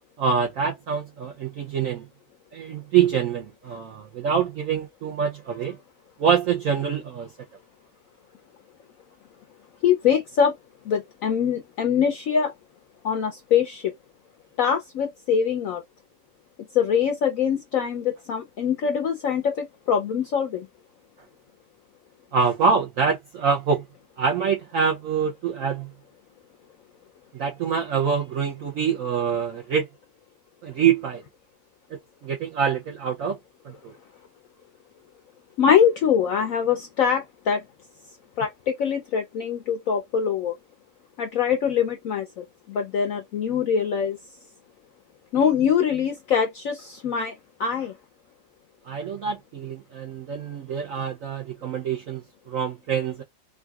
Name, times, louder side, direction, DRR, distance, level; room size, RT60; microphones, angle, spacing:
voice 1, 0.2-2.1 2.5-5.8 6.2-7.3 22.3-23.8 24.2-25.9 27.3-29.9 30.6-31.2 32.2-33.4 33.6-33.9 48.8-53.2, right 6 dB, 75° right, 0.7 m, -25 dB
voice 2, 9.8-10.5 10.9-12.5 13.0-13.9 14.6-15.8 16.7-20.7 35.6-37.6 38.4-40.5 41.2-44.2 45.3-47.3 47.6-47.9, left 7 dB, 75° left, 0.7 m, -23 dB
3.7 x 2.3 x 2.3 m
omnidirectional pair, 2.0 m